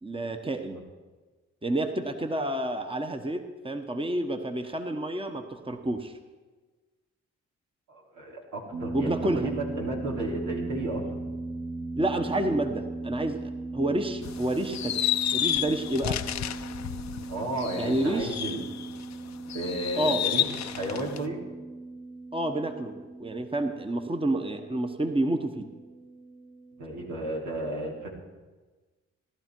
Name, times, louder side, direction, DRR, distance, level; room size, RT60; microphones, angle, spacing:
voice 1, 0.0-0.8 1.6-6.1 8.9-9.5 12.0-15.0 15.3-16.2 17.8-18.4 20.0-20.2 22.3-25.7, right 1 dB, 20° right, 6 dB, 1.3 m, -29 dB
voice 2, 7.9-11.2 17.3-18.6 19.5-21.4 26.8-28.1, right 2 dB, 80° right, -1 dB, 3.2 m, -33 dB
sound 1, 8.7-27.1, right 2 dB, 55° right, 3.8 m, -38 dB
sound 2, 14.2-19.0 19.5-21.2, left 11 dB, 70° left, 0.7 m, -31 dB
18.0 x 12.0 x 4.7 m, 1.3 s
supercardioid pair, 50°, 29 cm